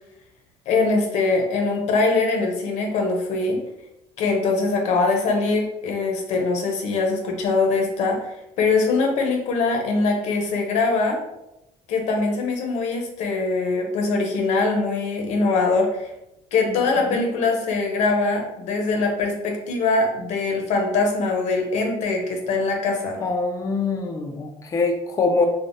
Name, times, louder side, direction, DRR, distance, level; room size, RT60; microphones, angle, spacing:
voice 1, 0.7-3.6 4.2-8.2 8.6-11.2 11.9-16.1 16.5-23.2, left 3 dB, 65° left, 2 dB, 0.7 m, -22 dB
voice 2, 23.2-25.5, left 3 dB, 25° left, 4 dB, 0.4 m, -24 dB
3.3 x 2.1 x 2.5 m, 0.89 s
cardioid pair, 145°, 13 cm